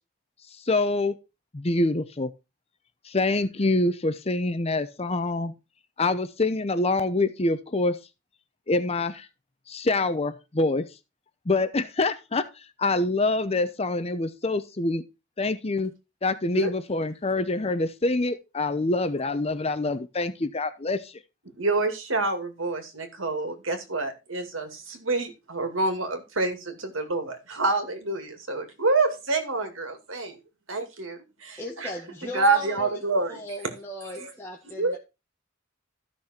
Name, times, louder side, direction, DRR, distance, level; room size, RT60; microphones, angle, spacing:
voice 1, 0.6-1.1 1.5-2.3 3.0-5.5 6.0-8.0 8.7-9.3 9.7-10.8 11.5-15.0 15.4-15.9 16.2-21.2, left 2 dB, 30° left, 0.8 m, -25 dB
voice 2, 21.6-30.4 30.7-31.9 32.3-33.8 34.2-34.3 34.7-35.0, right 3 dB, 85° right, 2.4 m, -27 dB
voice 3, 31.6-33.0 33.3-35.0, left 1 dB, 10° left, 1.6 m, -38 dB
13.5 x 6.2 x 4.3 m
head